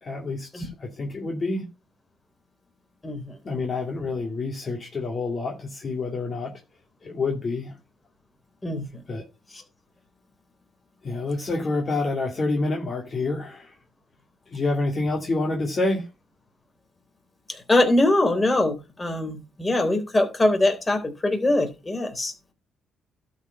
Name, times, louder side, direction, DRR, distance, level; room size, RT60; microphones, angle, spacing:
voice 1, 0.0-1.7 3.4-6.5 7.0-7.8 9.1-9.2 11.0-13.7 14.5-16.1, left 3 dB, 40° left, 2.5 m, -28 dB
voice 2, 3.0-3.4 8.6-9.0 17.5-22.3, left 2 dB, 20° left, 3.6 m, -23 dB
12.0 x 4.8 x 5.5 m
cardioid pair, 90°, 0 cm